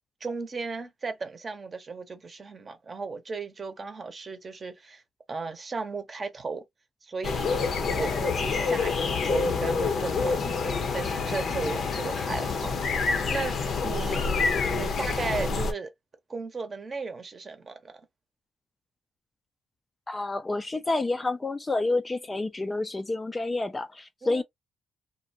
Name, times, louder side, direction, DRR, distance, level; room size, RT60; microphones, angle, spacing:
voice 1, 0.2-5.0 5.3-6.6 7.0-7.6 7.9-15.9 16.3-18.0 24.2-24.4, right 4 dB, 35° right, 0.7 m, -36 dB
sound 1, 7.2-15.7, left 4 dB, 55° left, 0.7 m, -27 dB
voice 2, 20.1-24.4, left 2 dB, 20° left, 0.4 m, -29 dB
2.6 x 2.1 x 2.7 m
cardioid pair, 90°, 0 cm